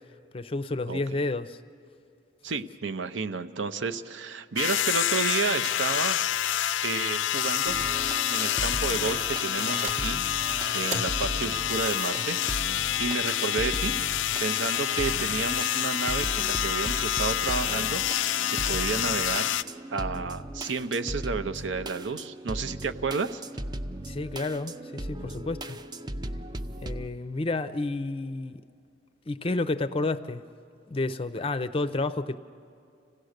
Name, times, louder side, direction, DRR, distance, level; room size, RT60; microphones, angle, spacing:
voice 1, 0.3-1.6 24.0-25.8 26.8-28.6 29.3-30.4 30.9-32.4, left 2 dB, 30° left, 13 dB, 0.5 m, -30 dB
voice 2, 2.4-6.2 6.8-7.8 8.3-10.2 10.7-12.4 13.0-13.9 14.4-19.5 19.9-23.4, right 5 dB, 80° right, 10 dB, 0.7 m, -31 dB
sound 1, 4.6-19.6, left 11 dB, 85° left, 0.4 m, -28 dB
sound 2, 7.7-27.1, right 1 dB, 20° right, 0.4 m, -37 dB
sound 3, 9.4-16.2, right 3 dB, 40° right, 0.8 m, -42 dB
26.5 x 16.5 x 6.5 m, 2.5 s
head